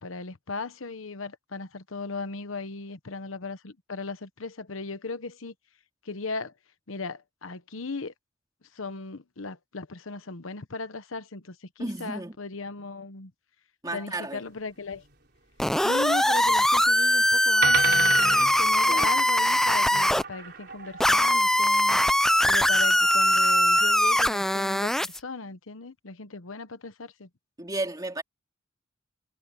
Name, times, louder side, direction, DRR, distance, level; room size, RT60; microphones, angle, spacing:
voice 1, 0.0-5.5 6.0-6.5 6.9-8.1 8.7-13.3 13.9-15.0 15.8-22.0 22.4-27.3, left 4 dB, 85° left, 1.1 m, -37 dB
voice 2, 11.8-12.4 13.8-14.4 18.9-19.1 27.6-28.2, right 2 dB, 20° right, 2.9 m, -33 dB
sound 1, 14.9-15.0 16.5-16.7 17.3-17.4 17.6-22.1 22.7-23.8, right 6 dB, 50° right, 4.6 m, -34 dB
sound 2, 15.6-20.2 21.0-25.2, left 1 dB, ahead, 0.4 m, -21 dB
head